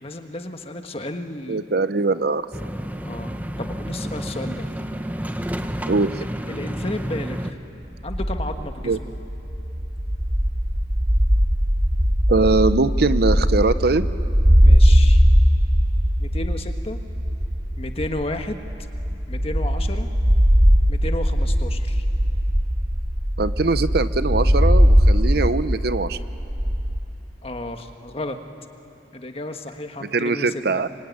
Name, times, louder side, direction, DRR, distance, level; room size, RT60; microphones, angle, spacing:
voice 1, 0.0-1.6 3.0-4.7 6.5-7.6 8.0-9.1 14.6-15.2 16.2-17.0 17.8-18.6 19.3-20.1 20.9-22.0 27.4-28.4 29.1-30.6, left 2 dB, 35° left, 6 dB, 1.5 m, -32 dB
voice 2, 1.5-2.5 5.9-6.1 8.8-9.0 12.3-14.1 23.4-26.2 30.1-30.9, right 3 dB, 60° right, 13 dB, 0.8 m, -21 dB
sound 1, 2.5-7.5, equal, 10° right, 0.9 m, -30 dB
sound 2, 7.9-27.0, equal, 35° right, 2.4 m, -19 dB
25.0 x 24.5 x 9.5 m, 2.8 s
head